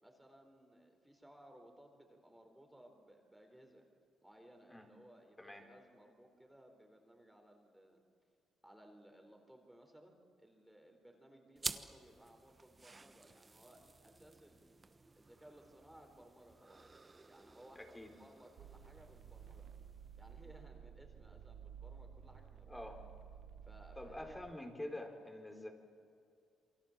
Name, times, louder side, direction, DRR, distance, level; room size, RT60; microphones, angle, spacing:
voice 1, 0.0-3.9 4.2-8.0 8.6-14.7 15.2-16.9 17.3-19.7 20.2-22.9 23.6-24.4, right 1 dB, 5° right, 3 dB, 4.2 m, -61 dB
sound 1, 11.6-20.5, right 3 dB, 25° right, 1.2 m, -51 dB
voice 2, 17.8-18.1 22.7-23.0 24.0-25.7, left 1 dB, 10° left, 4 dB, 4.0 m, -47 dB
sound 2, 18.6-24.5, right 8 dB, 80° right, 0.8 m, -54 dB
28.5 x 23.5 x 7.4 m, 2.4 s
cardioid pair, 90°, 0 cm